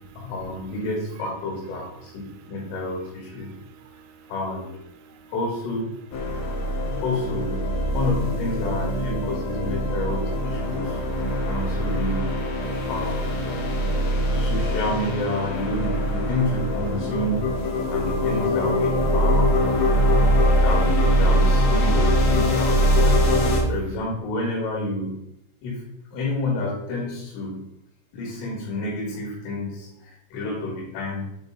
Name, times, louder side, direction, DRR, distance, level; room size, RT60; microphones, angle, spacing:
voice 1, 0.2-2.2 2.5-3.5 4.3-4.9 5.3-6.0 7.0-7.6 7.9-11.0 11.4-12.3 12.9-13.4 14.3-17.6 17.9-19.6 20.6-23.2 23.7-25.2 25.6-25.9 26.1-27.6 28.1-31.3, left 1 dB, 90° left, -3 dB, 4.6 m, -29 dB
sound 1, 6.1-23.6, equal, 70° left, 3.2 m, -22 dB
voice 2, 13.6-14.5 19.9-20.6 23.4-23.7, right 8 dB, 80° right, 5 dB, 3.4 m, -50 dB
8.7 x 4.6 x 3.9 m, 0.80 s
omnidirectional pair, 5.7 m